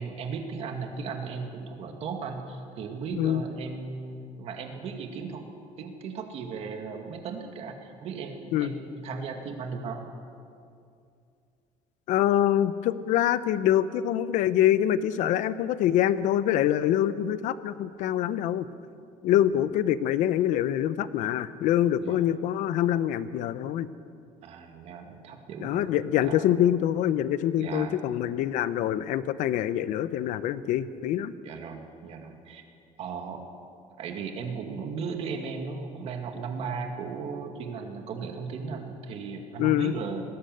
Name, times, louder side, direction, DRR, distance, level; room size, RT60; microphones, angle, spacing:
voice 1, 0.0-5.4 5.8-10.2 19.5-19.6 22.0-22.2 24.4-25.9 26.2-26.5 27.5-28.0 31.4-32.6 33.0-33.4 34.0-40.2, right 5 dB, 45° right, 4 dB, 2.2 m, -36 dB
voice 2, 12.1-18.7 19.2-23.9 25.6-31.3 39.6-39.9, left 11 dB, 65° left, 14 dB, 0.8 m, -25 dB
20.0 x 17.0 x 7.8 m, 2.5 s
cardioid pair, 175°, 14 cm